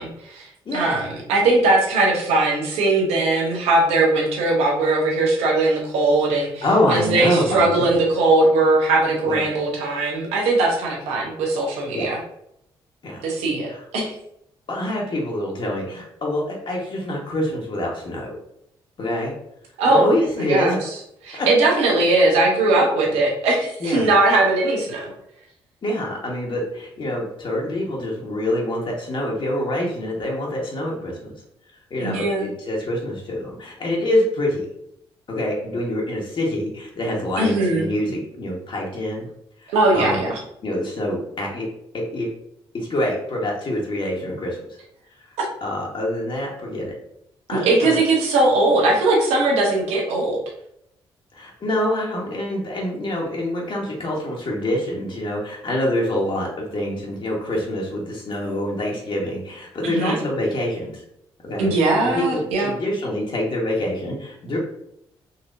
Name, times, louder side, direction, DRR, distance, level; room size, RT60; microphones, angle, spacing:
voice 1, 0.0-12.2 13.2-14.1 19.8-20.1 20.5-20.9 21.2-25.0 32.0-32.5 37.4-37.8 39.7-40.4 45.4-45.5 47.7-50.4 59.8-60.2 61.6-62.7, right 2 dB, 90° right, -1 dB, 0.9 m, -20 dB
voice 2, 6.6-7.9 9.2-9.4 11.9-12.1 13.0-13.2 13.7-13.8 14.7-18.4 19.0-19.3 19.8-20.8 21.3-21.5 21.9-22.0 23.8-24.1 25.8-31.3 31.9-34.7 35.3-39.3 39.6-40.3 40.6-41.7 41.9-42.3 42.7-44.6 45.2-45.3 45.6-46.9 47.5-48.0 51.3-61.0 61.4-61.7 62.0-64.6, left 1 dB, 50° left, -2 dB, 1.2 m, -26 dB
4.0 x 2.8 x 2.5 m, 0.76 s
supercardioid pair, 55°, 11 cm